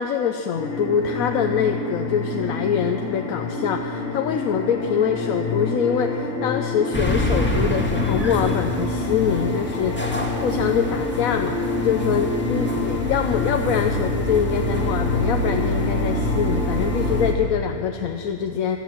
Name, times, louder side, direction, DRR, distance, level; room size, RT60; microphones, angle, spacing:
voice 1, 0.0-18.8, left 7 dB, 85° left, 6 dB, 1.1 m, -24 dB
sound 1, 0.5-17.3, left 3 dB, 40° left, 1.6 m, -27 dB
sound 2, 6.9-17.3, left 1 dB, 10° left, 1.7 m, -28 dB
15.5 x 12.0 x 7.5 m, 2.5 s
omnidirectional pair, 1.5 m